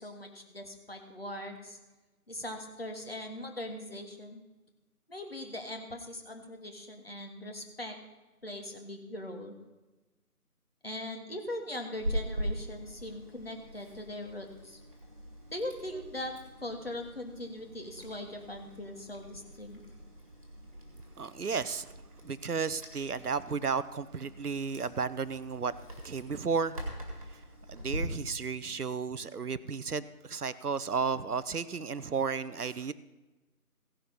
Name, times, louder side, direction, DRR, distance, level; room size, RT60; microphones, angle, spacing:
voice 1, 0.0-1.8 2.3-4.4 5.1-8.0 8.4-9.5 10.8-14.8 15.5-19.8, left 1 dB, 40° left, 3 dB, 1.5 m, -40 dB
Chewing mastication, 11.9-28.0, equal, 25° right, 1.9 m, -43 dB
voice 2, 21.2-21.9 22.2-25.7 26.0-26.8 27.3-27.4 27.7-32.9, right 5 dB, 75° right, 15 dB, 0.7 m, -33 dB
16.5 x 5.8 x 5.5 m, 1.1 s
figure-of-eight pair, 165°, 45 cm